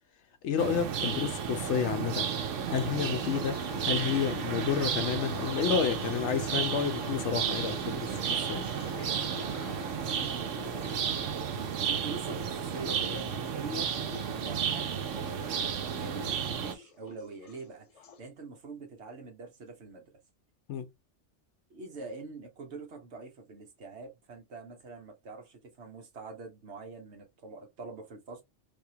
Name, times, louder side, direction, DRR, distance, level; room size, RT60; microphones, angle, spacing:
voice 1, 0.4-2.3 2.7-3.6 3.9-8.1 8.5-8.6 20.7-20.9, left 7 dB, 75° left, 0.9 m, -30 dB
sound 1, 0.6-16.7, right 7 dB, 90° right, 1.0 m, -33 dB
sound 2, 2.5-18.2, left 8 dB, 50° left, 0.4 m, -47 dB
voice 2, 8.9-9.3 9.5-13.3 13.5-13.9 14.3-20.1 21.7-28.4, right 3 dB, 65° right, 1.1 m, -45 dB
3.5 x 2.7 x 2.7 m
omnidirectional pair, 1.2 m